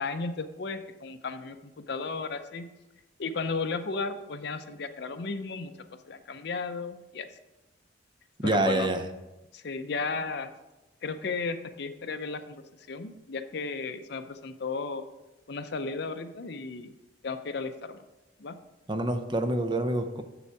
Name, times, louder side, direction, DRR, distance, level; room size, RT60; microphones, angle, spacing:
voice 1, 0.0-2.7 3.2-5.7 6.1-7.3 8.4-8.9 9.5-10.5 11.0-12.6 12.9-15.0 15.5-16.9 17.2-18.0 18.4-18.6, left 4 dB, 60° left, 9 dB, 0.6 m, -34 dB
voice 2, 8.4-9.0 18.9-20.2, right 2 dB, 25° right, 7 dB, 0.6 m, -27 dB
7.1 x 7.0 x 4.6 m, 1.0 s
head